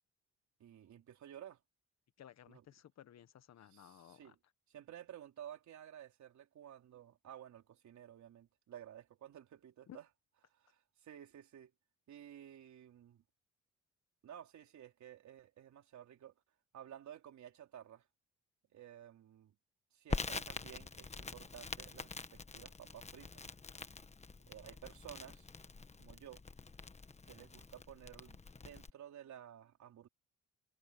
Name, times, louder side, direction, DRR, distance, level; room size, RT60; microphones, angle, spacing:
voice 1, 0.6-1.6 2.5-2.6 3.7-4.4 4.7-10.1 10.5-11.7 12.1-13.2 14.2-16.3 16.7-18.1 18.7-19.5 19.9-23.4 24.5-25.5 26.0-26.4 27.3-30.1, right 10 dB, 70° right, 4.1 m, -54 dB
voice 2, 2.2-4.3 9.9-10.0, left 10 dB, 60° left, 1.4 m, -57 dB
Crackle, 20.1-28.9, left 4 dB, 20° left, 1.3 m, -45 dB
cardioid pair, 90°, 30 cm